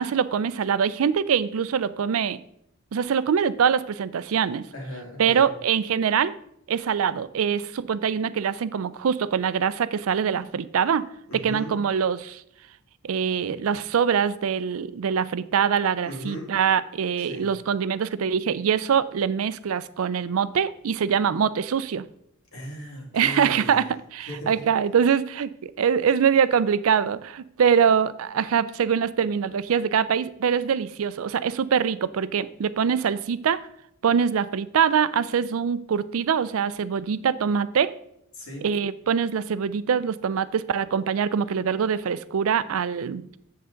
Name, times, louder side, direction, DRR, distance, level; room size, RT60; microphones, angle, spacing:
voice 1, 0.0-2.4 2.9-4.6 5.2-6.3 6.7-11.1 11.3-12.4 13.0-22.1 23.1-33.6 34.0-37.9 38.6-43.3, right 7 dB, 80° right, 16 dB, 0.4 m, -24 dB
voice 2, 4.7-5.5 11.3-11.8 16.0-16.5 17.2-17.5 22.5-23.8 24.3-24.5 38.3-38.7, equal, 85° left, 0 dB, 2.4 m, -37 dB
8.0 x 7.5 x 3.8 m, 0.74 s
head